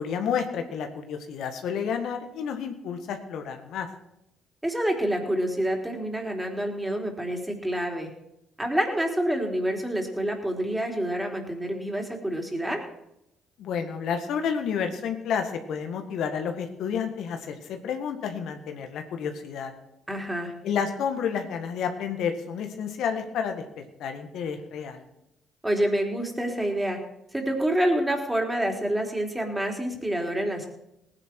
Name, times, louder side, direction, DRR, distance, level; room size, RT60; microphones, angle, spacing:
voice 1, 0.0-3.9 13.6-19.7 20.6-23.6 24.0-25.0, left 7 dB, 70° left, 6 dB, 1.7 m, -30 dB
voice 2, 4.6-8.1 8.6-12.8 20.1-20.5 25.6-27.0 27.3-30.7, right 1 dB, 10° right, 2 dB, 3.8 m, -27 dB
19.0 x 10.0 x 4.7 m, 0.85 s
hypercardioid pair, 55°, 0 cm